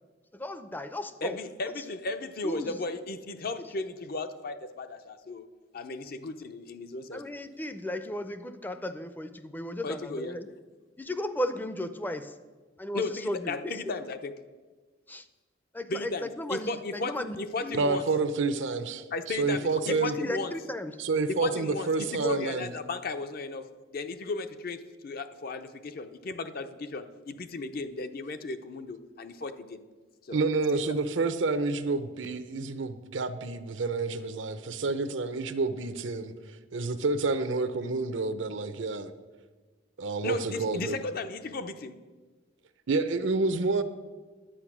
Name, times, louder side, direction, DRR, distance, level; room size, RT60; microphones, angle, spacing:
voice 1, 0.3-1.4 1.7-1.8 2.4-2.8 3.6-3.7 7.1-10.5 11.0-12.4 12.8-14.0 15.1-15.3 15.7-17.8 19.9-21.0, left 1 dB, 10° left, 0.5 m, -35 dB
voice 2, 1.2-5.4 5.7-7.2 9.8-10.4 12.9-14.3 15.9-18.0 19.1-20.5 21.3-29.8 30.2-30.4 30.7-30.8 40.2-42.0, left 3 dB, 50° left, 0.6 m, -35 dB
voice 3, 17.7-20.2 21.0-22.7 30.3-36.3 36.7-39.1 40.0-41.0 42.9-43.8, right 3 dB, 80° right, 0.7 m, -29 dB
10.0 x 8.4 x 6.1 m
head